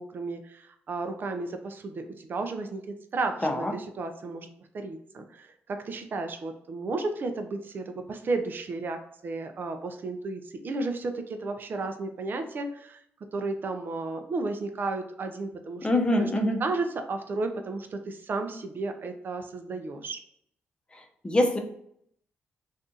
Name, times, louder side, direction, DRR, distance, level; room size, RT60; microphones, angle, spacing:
voice 1, 0.0-4.5 4.7-13.0 13.3-15.9 16.2-16.3 16.6-20.2, right 3 dB, 50° right, 6 dB, 0.5 m, -33 dB
voice 2, 3.4-3.7 15.8-16.6 21.2-21.6, left 1 dB, 20° left, 3 dB, 0.7 m, -24 dB
2.6 x 2.4 x 3.7 m, 0.70 s
cardioid pair, 75°, 4 cm